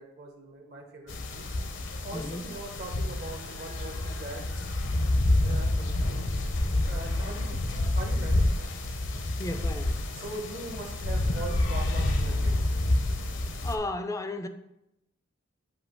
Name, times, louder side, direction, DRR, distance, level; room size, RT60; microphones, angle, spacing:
voice 1, 0.0-1.4 2.0-4.4 5.4-6.3 6.7-8.5 10.2-12.9, right 2 dB, 50° right, 2 dB, 0.9 m, -41 dB
sound 1, 1.1-13.8, left 1 dB, 65° left, 0.8 m, -28 dB
voice 2, 2.1-2.5 9.4-10.0 13.6-14.5, left 2 dB, 15° left, 8 dB, 0.4 m, -34 dB
8.0 x 2.8 x 6.0 m, 0.85 s
head